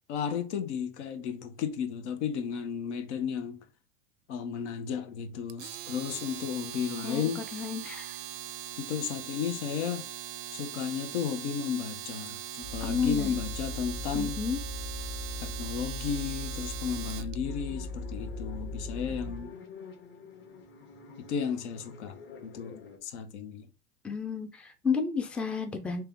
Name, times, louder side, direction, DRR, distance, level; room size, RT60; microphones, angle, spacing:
voice 1, 0.1-3.6 4.3-7.6 8.8-10.1 10.5-14.4 15.4-19.5 21.2-22.2 22.4-23.7, left 7 dB, 70° left, 0.8 m, -34 dB
Domestic sounds home sounds, 5.5-17.3, right 11 dB, 50° right, 0.5 m, -41 dB
voice 2, 7.0-8.2 12.8-13.3 14.1-14.6 24.0-26.0, left 5 dB, 5° left, 0.4 m, -32 dB
sound 1, 12.6-19.5, left 2 dB, 50° left, 1.2 m, -38 dB
sound 2, 17.4-23.0, left 5 dB, 35° left, 1.0 m, -48 dB
3.3 x 2.9 x 3.5 m
hypercardioid pair, 105°, 35 cm